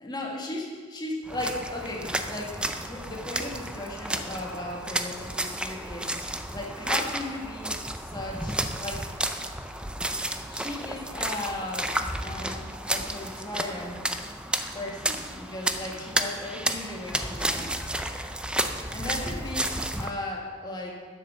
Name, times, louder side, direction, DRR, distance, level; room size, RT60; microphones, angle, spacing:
voice 1, 0.0-6.1 6.5-7.8 8.1-9.1 10.5-12.0 12.2-14.0 14.7-17.7 18.9-20.9, left 1 dB, 25° left, -1 dB, 1.8 m, -36 dB
sound 1, 1.3-20.1, right 1 dB, 5° right, 0.5 m, -32 dB
9.6 x 8.4 x 6.6 m, 1.5 s
head